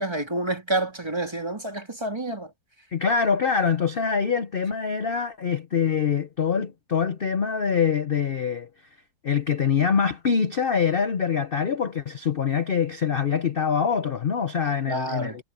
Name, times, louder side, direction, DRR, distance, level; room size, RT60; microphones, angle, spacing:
voice 1, 0.0-2.5 14.9-15.4, right 2 dB, 15° right, 2.8 m, -28 dB
voice 2, 2.9-8.7 9.2-15.4, left 6 dB, 75° left, 0.5 m, -24 dB
omnidirectional pair, 2.0 m